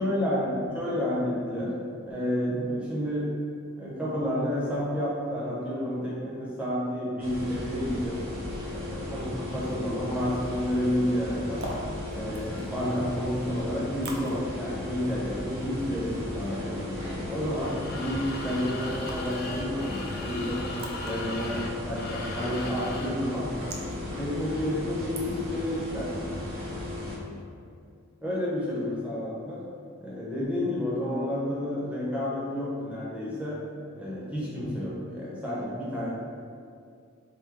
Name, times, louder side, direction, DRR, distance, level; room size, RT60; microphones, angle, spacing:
voice 1, 0.0-1.7 2.1-3.3 3.8-8.2 8.7-11.7 12.1-20.7 21.0-23.5 24.1-26.3 28.2-29.6 30.0-33.6 34.0-36.1, equal, 5° right, -7 dB, 0.8 m, -30 dB
sound 1, 7.2-27.2, left 2 dB, 75° right, 1.1 m, -36 dB
sound 2, 11.3-25.7, right 1 dB, 50° right, 0.5 m, -47 dB
sound 3, 17.5-23.2, left 2 dB, 50° left, 0.4 m, -39 dB
4.4 x 2.2 x 3.6 m, 2.3 s
head